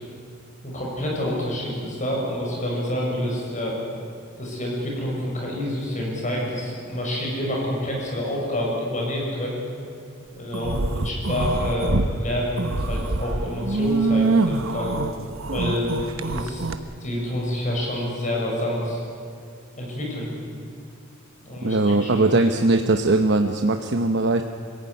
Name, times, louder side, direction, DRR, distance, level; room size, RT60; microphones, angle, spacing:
voice 1, 0.6-3.8 4.4-9.6 10.4-14.9 15.5-16.0 16.3-16.7 17.0-19.0 19.8-20.3 21.4-22.4, left 1 dB, 40° left, -2 dB, 6.9 m, -28 dB
sound 1, 10.5-12.1 12.5-16.7, right 3 dB, 85° right, 1.2 m, -24 dB
voice 2, 21.6-24.4, right 2 dB, 60° right, 5 dB, 1.0 m, -20 dB
25.0 x 16.5 x 9.7 m, 2.3 s
head